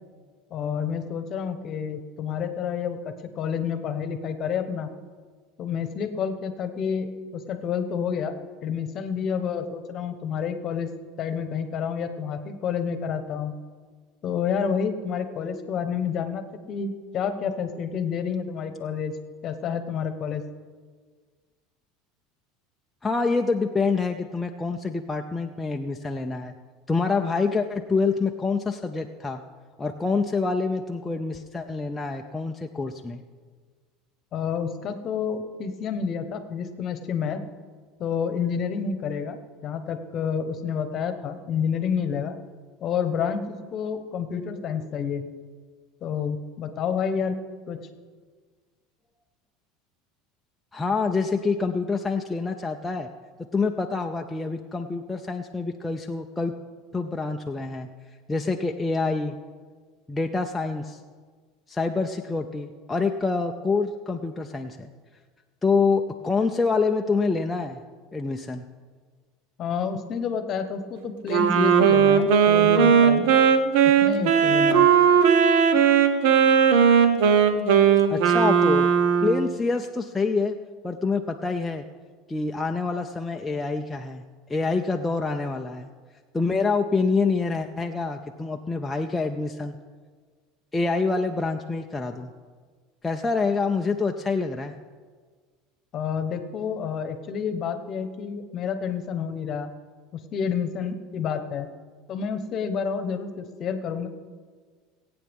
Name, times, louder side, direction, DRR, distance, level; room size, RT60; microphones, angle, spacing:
voice 1, 0.5-4.9 5.6-8.3 8.6-10.9 11.2-13.5 14.2-19.1 19.4-20.4 34.3-37.4 38.0-42.3 42.8-45.2 46.0-47.4 47.7-47.8 69.6-73.3 74.0-74.9 95.9-99.7 100.3-101.7 102.1-104.1, left 7 dB, 40° left, 9 dB, 1.1 m, -29 dB
voice 2, 23.0-26.5 26.9-29.4 29.8-33.2 50.7-53.1 53.5-56.5 56.9-57.9 58.3-59.4 60.1-61.0 61.7-64.9 65.6-67.8 68.1-68.6 78.1-78.9 79.2-80.6 80.8-81.8 82.3-84.2 84.5-85.9 86.3-89.8 90.7-92.3 93.0-94.8, left 4 dB, 10° left, 2 dB, 0.5 m, -26 dB
Wind instrument woodwind instrument, 71.3-79.5, right 7 dB, 75° right, 1.0 m, -18 dB
22.0 x 8.6 x 3.6 m, 1.5 s
supercardioid pair, 130°, 0 cm